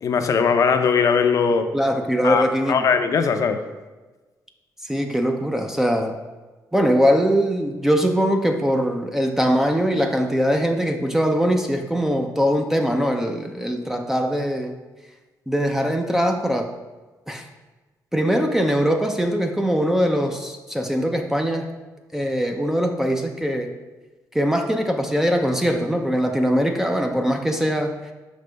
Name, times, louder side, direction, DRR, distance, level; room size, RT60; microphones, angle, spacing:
voice 1, 0.0-1.7 2.2-3.6, left 6 dB, 50° left, 7 dB, 0.5 m, -20 dB
voice 2, 1.7-2.8 4.8-6.2 6.7-14.7 15.5-16.7 17.3-17.5 18.1-21.7 22.1-23.7 24.3-27.9, equal, 5° right, 4 dB, 0.4 m, -21 dB
5.9 x 5.2 x 3.3 m, 1.2 s
cardioid pair, 125°, 7 cm